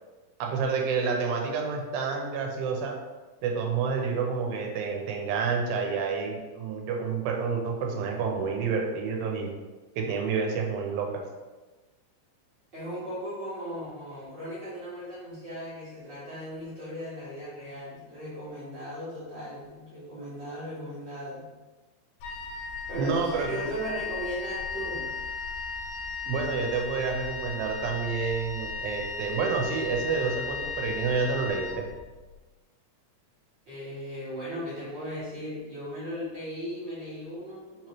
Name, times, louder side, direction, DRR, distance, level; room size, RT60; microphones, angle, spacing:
voice 1, 0.4-3.0 3.4-9.5 10.0-11.2 22.9-24.0 26.3-31.9, right 5 dB, 85° right, 1 dB, 2.5 m, -29 dB
voice 2, 12.7-21.5 22.9-25.1 33.6-37.9, equal, 45° right, -11 dB, 1.6 m, -37 dB
Wind instrument woodwind instrument, 22.2-32.3, left 4 dB, 80° left, 2.2 m, -36 dB
5.3 x 3.0 x 2.9 m, 1.2 s
omnidirectional pair, 4.1 m